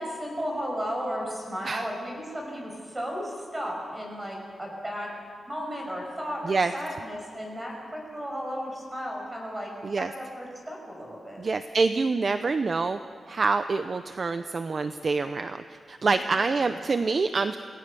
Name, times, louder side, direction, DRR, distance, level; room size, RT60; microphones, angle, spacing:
voice 1, 0.0-5.2 5.5-9.7 10.0-11.4 16.1-16.6, equal, 15° right, 0 dB, 5.7 m, -34 dB
voice 2, 11.4-13.0 13.3-17.6, right 4 dB, 40° right, 9 dB, 0.6 m, -26 dB
28.5 x 18.0 x 6.9 m, 2.3 s
wide cardioid pair, 180°, 0 cm